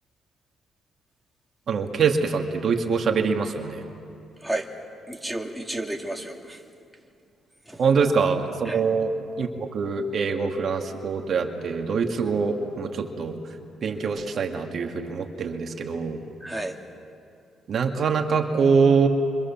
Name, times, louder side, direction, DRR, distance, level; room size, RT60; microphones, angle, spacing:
voice 1, 1.7-3.8 7.8-13.4 13.8-16.2 17.7-19.1, right 5 dB, 55° right, 3 dB, 2.2 m, -24 dB
voice 2, 5.1-6.6 7.7-7.8 8.6-8.8 16.4-16.7, right 1 dB, 5° right, 1 dB, 2.7 m, -31 dB
29.0 x 25.0 x 7.4 m, 2.5 s
cardioid pair, 90°, 0 cm